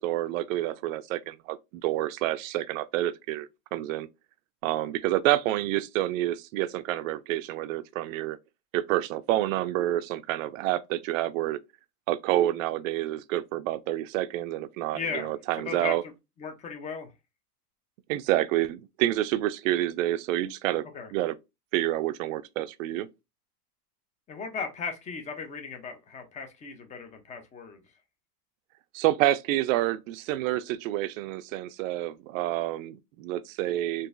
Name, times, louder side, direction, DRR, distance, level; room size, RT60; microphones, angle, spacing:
voice 1, 0.0-4.1 4.6-8.4 8.7-11.6 12.1-16.0 18.1-20.8 21.1-21.3 21.7-23.1 28.9-34.1, right 14 dB, 55° right, 0.5 m, -28 dB
voice 2, 14.9-15.3 15.6-15.9 16.4-17.1 20.9-21.1 24.3-27.8, left 5 dB, 15° left, 0.5 m, -36 dB
3.8 x 2.6 x 2.5 m
hypercardioid pair, 125°, 47 cm